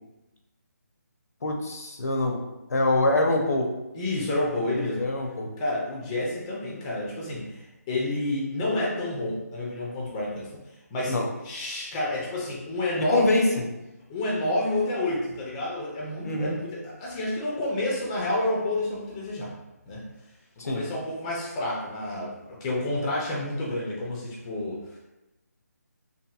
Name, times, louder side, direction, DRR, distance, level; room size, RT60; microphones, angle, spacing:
voice 1, 1.4-2.4 2.7-3.7 4.7-5.5 11.1-11.3 13.0-13.6 16.2-16.6 20.6-20.8, left 2 dB, 65° left, 1 dB, 0.6 m, -25 dB
voice 2, 3.9-5.0 5.6-10.6 10.9-11.1 11.4-13.5 14.1-19.5 19.9-20.0 20.6-25.0, left 1 dB, 15° left, -4 dB, 0.4 m, -29 dB
2.8 x 2.5 x 2.3 m, 0.97 s
figure-of-eight pair, 155°, 9 cm